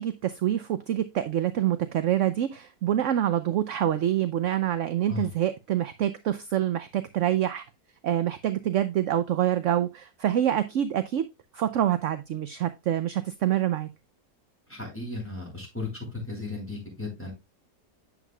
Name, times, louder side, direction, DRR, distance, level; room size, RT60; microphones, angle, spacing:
voice 1, 0.0-7.6 8.0-11.2 11.5-13.9, right 11 dB, 60° right, 0.8 m, -26 dB
voice 2, 14.7-17.3, left 3 dB, 5° left, 5.4 m, -35 dB
9.0 x 7.5 x 2.3 m
omnidirectional pair, 1.7 m